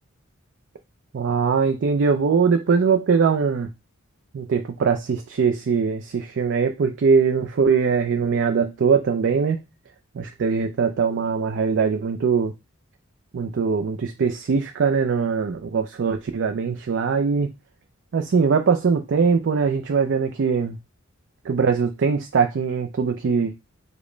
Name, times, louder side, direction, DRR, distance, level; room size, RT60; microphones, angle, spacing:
voice 1, 1.1-3.7 4.3-9.6 10.1-12.5 13.3-17.5 18.1-20.8 21.4-23.6, right 5 dB, 55° right, 0.4 m, -21 dB
5.1 x 2.1 x 4.9 m
head